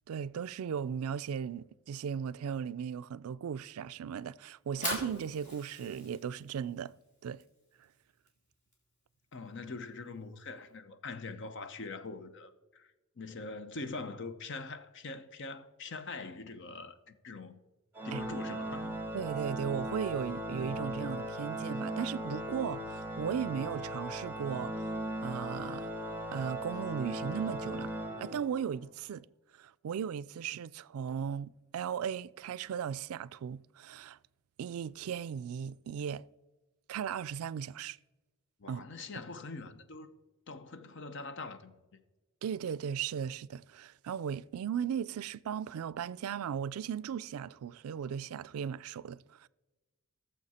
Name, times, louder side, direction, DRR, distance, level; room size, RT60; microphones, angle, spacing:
voice 1, 0.1-6.9 7.2-7.4 18.1-18.2 19.1-24.9 25.2-25.9 26.3-27.9 28.2-29.3 29.5-34.2 34.6-36.2 36.9-38.0 38.7-38.9 42.4-49.5, right 8 dB, 90° right, 0.3 m, -37 dB
Fire, 4.5-10.7, left 1 dB, 35° left, 3.2 m, -44 dB
voice 2, 9.3-12.9 13.2-17.6 18.0-19.0 38.6-40.2 40.5-42.0, left 3 dB, 60° left, 0.8 m, -43 dB
Organ, 17.9-28.8, right 1 dB, 10° right, 1.1 m, -38 dB
17.0 x 7.1 x 4.2 m
head